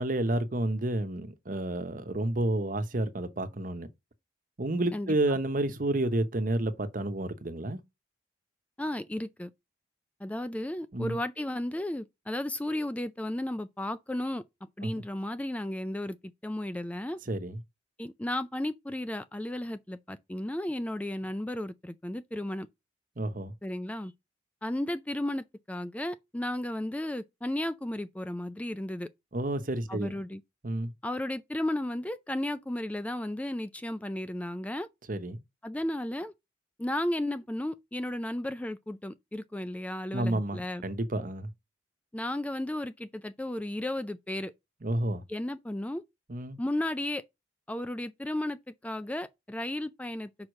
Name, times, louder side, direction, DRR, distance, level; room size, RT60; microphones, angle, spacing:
voice 1, 0.0-3.9 4.6-7.8 10.9-11.2 14.8-14.9 17.3-17.6 23.2-23.5 29.3-30.1 30.6-30.9 35.1-35.4 40.1-41.5 44.8-45.2 46.3-46.6, right 1 dB, 45° right, 0.9 m, -30 dB
voice 2, 8.8-9.5 10.2-14.4 14.8-16.2 16.4-17.2 18.0-22.7 23.6-24.1 24.6-29.1 29.9-30.4 31.0-34.9 35.6-36.3 36.8-40.8 42.1-44.5 45.3-46.0 46.6-47.2 47.7-50.3, left 1 dB, 10° left, 0.4 m, -34 dB
5.6 x 4.8 x 6.3 m
head